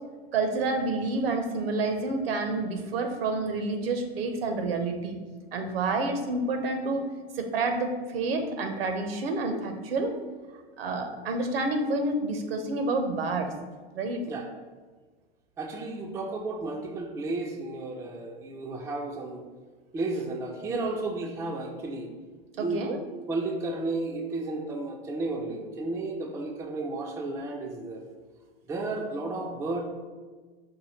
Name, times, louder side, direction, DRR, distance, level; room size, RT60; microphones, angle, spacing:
voice 1, 0.3-5.2 5.5-7.1 7.3-10.1 10.8-13.5 13.9-14.2 22.6-23.0, right 3 dB, 70° right, 6 dB, 0.8 m, -29 dB
voice 2, 15.6-19.4 19.9-22.1 22.5-22.8 23.3-28.0 28.7-29.8, right 2 dB, 10° right, 2 dB, 0.3 m, -33 dB
4.9 x 2.2 x 4.2 m, 1.4 s
hypercardioid pair, 105°, 31 cm